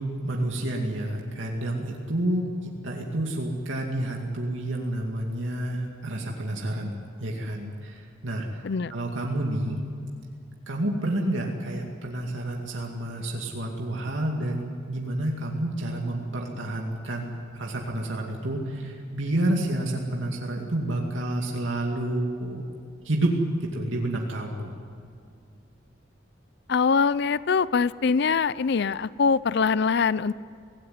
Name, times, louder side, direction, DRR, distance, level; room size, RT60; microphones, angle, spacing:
voice 1, 0.2-8.6 8.9-9.8 10.7-22.6 23.0-24.7, right 1 dB, 75° right, 0 dB, 2.4 m, -29 dB
voice 2, 26.7-30.3, left 5 dB, 60° left, 18 dB, 0.5 m, -23 dB
24.0 x 17.5 x 9.7 m, 2.3 s
head